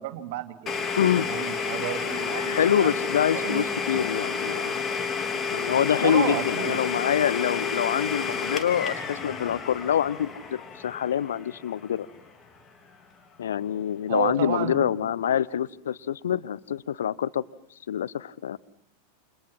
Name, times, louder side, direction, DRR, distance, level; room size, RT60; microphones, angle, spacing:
voice 1, 0.0-0.8 1.2-2.9 3.3-4.0 6.0-6.8 14.1-14.9, right 13 dB, 50° right, 8 dB, 2.9 m, -32 dB
Domestic sounds home sounds, 0.7-12.3, left 5 dB, 20° left, 3.5 m, -30 dB
voice 2, 0.9-1.3 2.1-4.8 5.5-12.1 13.4-17.4 17.9-18.6, left 9 dB, 65° left, 16 dB, 0.9 m, -26 dB
29.5 x 28.0 x 5.9 m, 0.73 s
figure-of-eight pair, 90°, 0 cm